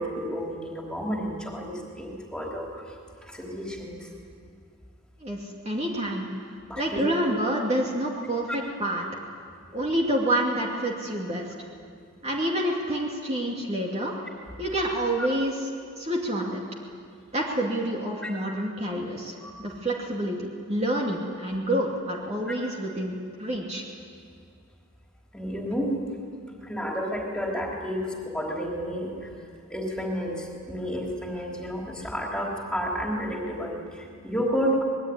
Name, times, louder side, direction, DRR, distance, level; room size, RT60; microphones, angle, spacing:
voice 1, 0.0-2.8 3.2-4.1 6.7-7.2 8.5-8.6 18.2-18.3 19.4-19.5 22.5-22.6 25.3-26.0 26.6-29.3 29.7-34.8, equal, 5° left, -1 dB, 3.7 m, -31 dB
voice 2, 5.2-6.3 6.8-9.0 9.7-11.5 12.2-14.1 14.6-15.7 16.0-16.6 17.3-23.8, right 1 dB, 30° right, -2 dB, 2.5 m, -28 dB
25.5 x 21.0 x 9.6 m, 2.2 s
head